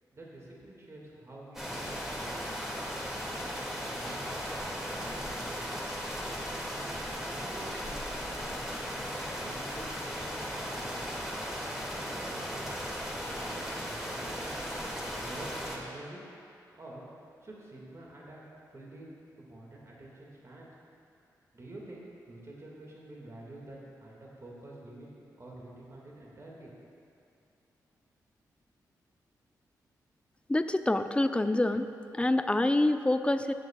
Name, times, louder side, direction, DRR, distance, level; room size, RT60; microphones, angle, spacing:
voice 1, 0.1-2.6 2.9-3.6 3.9-5.8 6.5-6.9 7.2-8.7 9.0-10.3 10.5-11.1 11.8-12.7 13.3-16.3 16.7-18.4 18.7-19.1 19.4-20.7 21.5-26.7, right 1 dB, 40° right, -4 dB, 2.0 m, -48 dB
sound 1, 1.5-15.8, equal, 5° right, 2.3 m, -37 dB
voice 2, 30.5-31.9 32.1-33.5, left 1 dB, 15° left, 9 dB, 0.5 m, -26 dB
18.0 x 7.2 x 2.4 m, 2.5 s
supercardioid pair, 45°, 8 cm